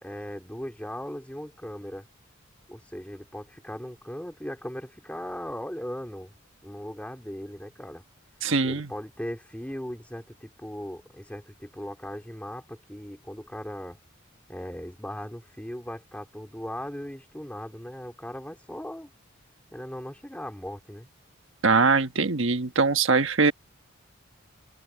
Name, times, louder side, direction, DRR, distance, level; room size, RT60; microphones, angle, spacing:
voice 1, 0.0-2.1 2.7-6.3 6.6-8.0 8.6-14.0 14.5-19.1 19.7-21.1, equal, 5° left, 2.7 m, -38 dB
voice 2, 8.4-8.9 21.6-23.5, right 4 dB, 70° right, 1.4 m, -22 dB
head